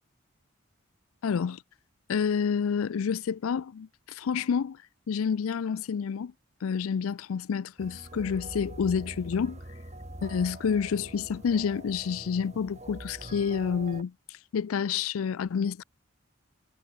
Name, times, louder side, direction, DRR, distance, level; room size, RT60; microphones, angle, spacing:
voice 1, 1.2-1.6 2.1-4.8 5.1-6.3 6.6-9.6 10.2-15.8, left 6 dB, 85° left, 0.4 m, -29 dB
sound 1, 7.8-14.0, right 1 dB, 30° right, 3.0 m, -44 dB
head